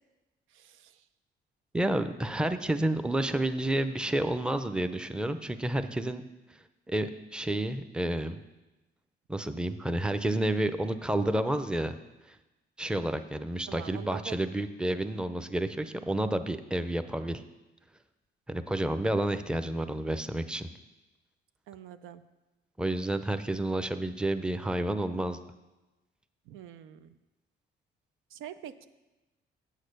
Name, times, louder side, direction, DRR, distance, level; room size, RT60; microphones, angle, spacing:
voice 1, 0.5-1.1 13.7-14.4 19.1-19.3 21.7-22.2 26.5-27.2 28.3-28.9, right 11 dB, 90° right, 11 dB, 0.5 m, -45 dB
voice 2, 1.7-6.2 6.9-8.4 9.3-12.0 12.3-12.4 12.8-17.4 18.5-20.7 22.8-25.4, right 1 dB, 5° right, 10 dB, 0.5 m, -30 dB
7.9 x 6.5 x 6.5 m, 1.1 s
cardioid pair, 90°, 20 cm